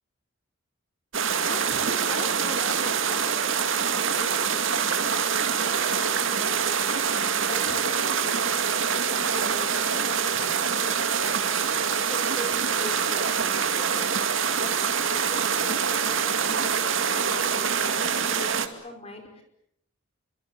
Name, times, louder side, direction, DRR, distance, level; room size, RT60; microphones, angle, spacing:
sound 1, 1.1-18.7, right 7 dB, 60° right, 2.3 m, -25 dB
voice 1, 1.4-11.4 12.1-19.4, left 1 dB, 30° left, 5 dB, 4.9 m, -41 dB
29.0 x 25.0 x 8.2 m, 0.77 s
head